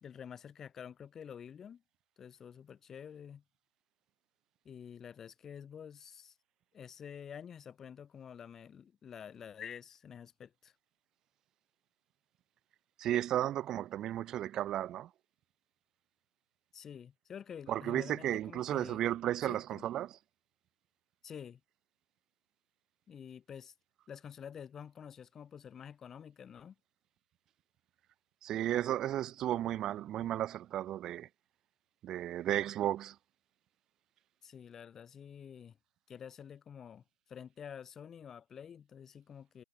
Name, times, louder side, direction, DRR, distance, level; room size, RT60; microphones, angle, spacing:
voice 1, 0.0-1.8 2.2-3.4 4.6-6.3 6.7-10.7 16.7-19.0 19.4-19.9 21.2-21.6 23.1-23.7 24.1-26.8 34.4-35.8 36.1-37.0 37.3-39.6, left 8 dB, 10° left, 3.8 m, -49 dB
voice 2, 13.0-15.1 17.7-20.2 28.4-31.3 32.0-33.2, right 12 dB, 15° right, 0.4 m, -34 dB
hypercardioid pair, 150°, 3 cm